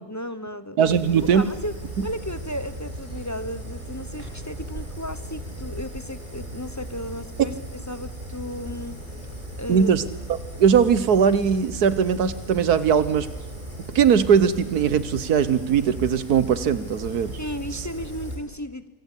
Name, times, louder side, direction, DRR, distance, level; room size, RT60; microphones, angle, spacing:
voice 1, 0.1-0.8 1.3-1.7 2.0-7.5 7.9-9.0 9.6-9.9 17.4-18.9, equal, 15° left, 12 dB, 0.8 m, -34 dB
voice 2, 0.8-1.5 2.0-2.1 9.7-10.0 10.3-13.3 13.9-17.4, right 7 dB, 80° right, 14 dB, 1.6 m, -20 dB
Fire, 0.9-18.4, right 1 dB, 30° right, 6.0 m, -37 dB
24.5 x 24.0 x 8.4 m, 1.2 s
omnidirectional pair, 1.6 m